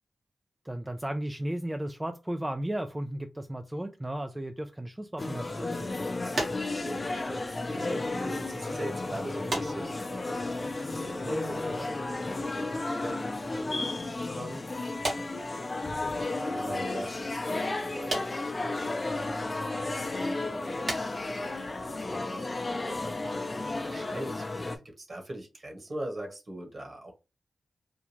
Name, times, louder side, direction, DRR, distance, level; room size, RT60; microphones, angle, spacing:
voice 1, 0.6-5.9, right 1 dB, 15° right, 0.4 m, -35 dB
sound 1, 5.2-24.8, left 2 dB, 40° left, 0.6 m, -33 dB
sound 2, 6.3-8.0 8.3-8.7 9.5-10.4 10.7-11.9 12.2-12.6 13.5-14.1 14.9-16.1 16.4-16.6 18.1-18.8 19.5-19.6 20.0-20.4 20.8-21.1 21.4-21.6 21.9-22.1 22.8-22.9 23.3-23.4 23.5-23.6, right 1 dB, 70° right, 1.4 m, -37 dB
voice 2, 6.8-14.0 14.3-14.8 15.1-15.5 16.2-21.2 21.7-24.7 25.0-27.1, right 1 dB, 50° right, 1.5 m, -41 dB
3.6 x 2.3 x 3.0 m
cardioid pair, 50°, 0 cm